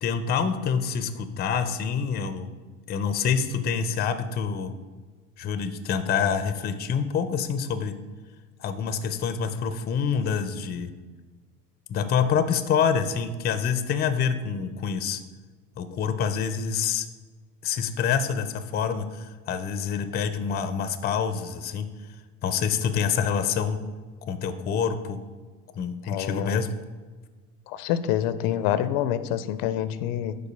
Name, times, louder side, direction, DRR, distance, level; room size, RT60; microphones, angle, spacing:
voice 1, 0.0-2.5 2.9-4.7 5.4-7.9 8.6-10.9 11.9-15.2 15.8-17.1 17.6-21.9 22.4-23.8 24.2-25.2 25.7-26.7, left 7 dB, 25° left, 10 dB, 0.4 m, -26 dB
voice 2, 26.1-26.5 27.7-30.4, left 11 dB, 75° left, 14 dB, 0.5 m, -27 dB
5.4 x 3.9 x 5.0 m, 1.4 s
hypercardioid pair, 80°, 46 cm